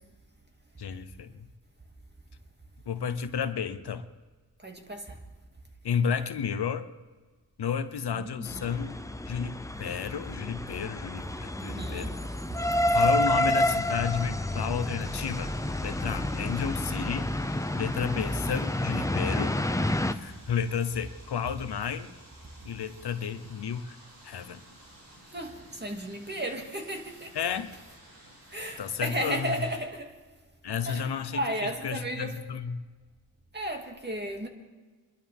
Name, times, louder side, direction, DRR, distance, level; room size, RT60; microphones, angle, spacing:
voice 1, 0.8-1.3 2.9-4.0 5.8-6.9 7.6-9.0 9.3-12.1 12.9-15.5 15.8-17.3 17.7-19.6 20.1-22.1 22.6-24.0 24.2-24.6 27.3-27.7 28.8-29.5 30.6-31.4 31.8-32.8, left 7 dB, 90° left, 0.9 m, -32 dB
voice 2, 4.6-5.2 8.1-8.7 11.6-12.2 12.7-12.8 25.3-27.5 28.5-30.1 30.8-32.4 33.5-34.5, right 1 dB, 25° right, 2.4 m, -34 dB
sound 1, 8.5-20.1, left 1 dB, 10° left, 0.8 m, -29 dB
sound 2, 15.0-29.8, right 1 dB, 90° right, 6.0 m, -54 dB
25.0 x 11.5 x 3.6 m
cardioid pair, 65°, 38 cm